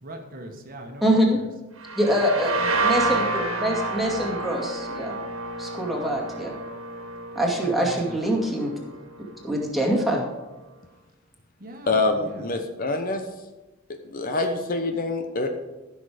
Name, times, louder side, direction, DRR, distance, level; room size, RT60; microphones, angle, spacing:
voice 1, 0.0-1.2 7.6-8.2 11.6-12.5, right 1 dB, 45° right, 3 dB, 1.4 m, -40 dB
voice 2, 1.0-1.4 2.0-5.1 5.6-6.5 7.3-8.7 9.4-10.2, equal, ahead, -3 dB, 2.2 m, -24 dB
sound 1, 1.8-9.3, right 3 dB, 75° right, 1.9 m, -29 dB
voice 3, 11.9-13.2 14.1-15.5, left 3 dB, 40° left, 5 dB, 0.9 m, -25 dB
14.5 x 6.4 x 5.0 m, 1.1 s
head